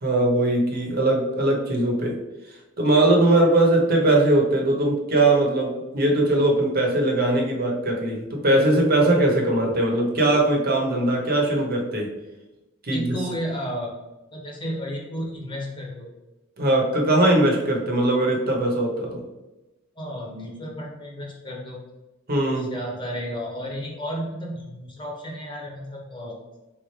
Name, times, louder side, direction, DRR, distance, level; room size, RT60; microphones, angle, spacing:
voice 1, 0.0-2.2 2.8-12.1 12.8-13.1 16.6-19.2 22.3-22.7, right 1 dB, 50° right, -1 dB, 1.0 m, -20 dB
voice 2, 12.9-14.0 14.3-16.1 19.9-21.8 22.5-26.4, equal, 25° left, -1 dB, 1.0 m, -32 dB
4.5 x 3.6 x 3.3 m, 1.0 s
head